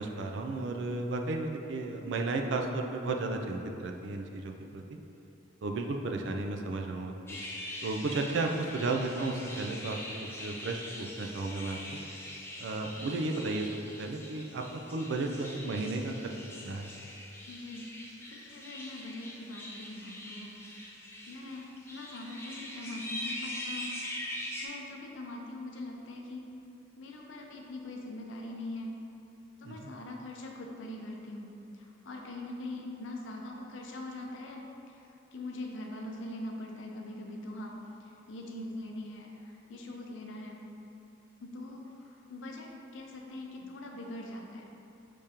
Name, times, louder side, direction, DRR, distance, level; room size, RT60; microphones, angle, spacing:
voice 1, 0.0-4.8 5.6-7.4 7.8-10.0 10.4-12.0 12.6-13.7 14.0-16.3 16.6-16.9 29.6-29.9, right 2 dB, 65° right, 3 dB, 0.4 m, -33 dB
sound 1, 7.3-24.7, left 1 dB, 10° left, 0.4 m, -43 dB
voice 2, 17.5-17.9 18.3-20.5 21.3-23.9 24.2-24.3 24.6-26.5 27.0-29.0 29.6-35.0 35.3-40.6 41.4-44.7, left 1 dB, 75° left, 1 dB, 0.5 m, -42 dB
4.9 x 3.5 x 2.8 m, 2.8 s
head